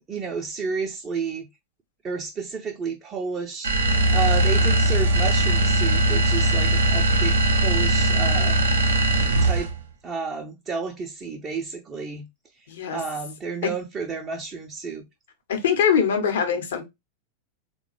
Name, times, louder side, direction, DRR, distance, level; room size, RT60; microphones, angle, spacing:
voice 1, 0.1-1.5 2.0-8.9 9.4-9.7 10.0-12.3 12.5-15.1, right 5 dB, 25° right, 0.5 m, -31 dB
sound 1, 3.6-9.8, right 1 dB, 70° right, 0.5 m, -20 dB
voice 2, 12.7-13.0 13.6-13.7 15.5-16.8, left 7 dB, 60° left, 0.8 m, -22 dB
3.6 x 2.2 x 3.0 m
figure-of-eight pair, 90°, 0 cm